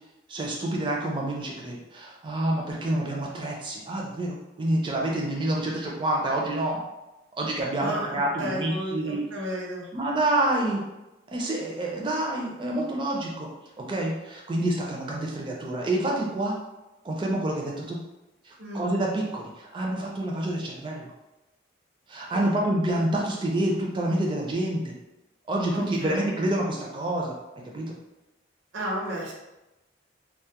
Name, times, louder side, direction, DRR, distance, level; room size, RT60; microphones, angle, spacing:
voice 1, 0.3-6.8 7.4-9.2 9.9-10.8 11.3-13.5 13.8-16.6 17.0-18.0 18.5-21.1 22.1-24.9 25.5-27.4 27.7-28.0, right 1 dB, 25° right, -2 dB, 0.4 m, -28 dB
voice 2, 7.8-9.9 18.6-18.8 22.3-22.6 25.7-26.2 28.7-29.3, equal, 80° right, -3 dB, 0.7 m, -33 dB
2.2 x 2.0 x 2.8 m, 1.0 s
head